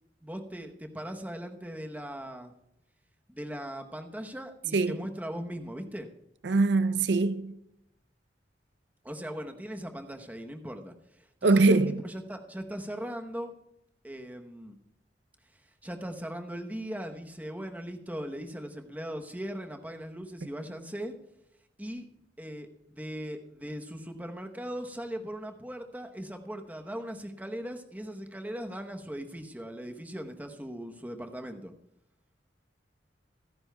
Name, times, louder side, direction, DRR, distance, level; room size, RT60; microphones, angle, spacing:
voice 1, 0.2-2.5 3.3-6.1 9.0-13.5 14.0-14.8 15.8-21.1 21.8-22.0 22.4-31.7, equal, 10° right, 0.9 m, -39 dB
voice 2, 6.4-7.5 11.4-12.0, right 3 dB, 75° right, 0.5 m, -23 dB
26.0 x 9.6 x 2.3 m
head